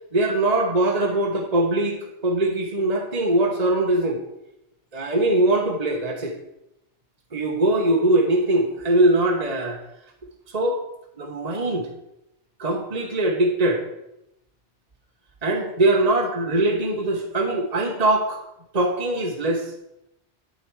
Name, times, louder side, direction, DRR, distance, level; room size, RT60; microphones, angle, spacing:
voice 1, 0.1-4.2 4.9-6.4 7.3-9.8 10.5-10.8 11.2-11.9 12.6-13.8 15.4-18.4 18.7-19.7, right 2 dB, 35° right, 1 dB, 1.2 m, -22 dB
12.5 x 7.1 x 4.7 m, 0.87 s
omnidirectional pair, 1.2 m